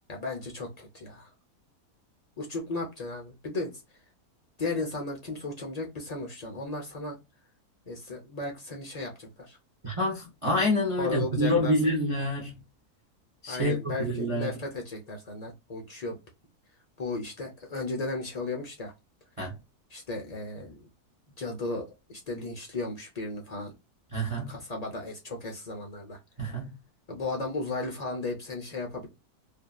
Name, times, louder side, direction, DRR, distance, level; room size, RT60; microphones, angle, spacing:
voice 1, 0.1-1.3 2.4-3.7 4.6-7.2 7.9-9.6 11.0-11.7 13.5-16.2 17.0-18.9 19.9-20.9 21.4-23.7 24.5-26.2 27.1-29.1, left 2 dB, 55° left, 0.4 m, -35 dB
voice 2, 9.8-12.6 13.4-14.5 19.4-19.6 24.1-24.6 26.4-26.8, equal, 35° right, 0.5 m, -27 dB
2.6 x 2.6 x 2.2 m
omnidirectional pair, 1.6 m